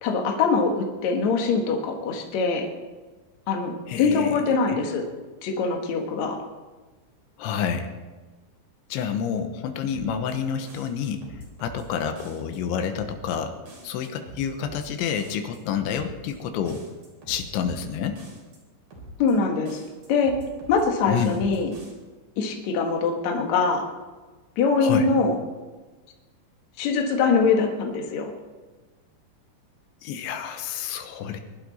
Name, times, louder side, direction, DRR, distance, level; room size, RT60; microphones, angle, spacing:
voice 1, 0.0-2.7 3.5-5.0 5.4-6.4 19.2-19.8 20.1-20.3 20.7-21.7 22.4-23.8 24.6-25.4 26.8-28.3, left 4 dB, 55° left, 2 dB, 2.2 m, -23 dB
voice 2, 3.9-4.8 7.4-7.9 8.9-11.2 11.6-13.6 13.8-16.9 17.3-18.2 21.1-21.4 24.8-25.1 30.0-31.4, left 7 dB, 85° left, 7 dB, 3.4 m, -29 dB
sound 1, 9.9-10.3 10.7-11.8 12.2-12.6 12.9-13.3 13.7-14.8 15.2-15.6 15.9-16.3 16.7-17.8 18.2-18.6 18.9-19.3 19.7-20.8 21.2-21.9, right 1 dB, 55° right, 5.5 m, -44 dB
21.5 x 12.0 x 4.2 m, 1.3 s
omnidirectional pair, 5.2 m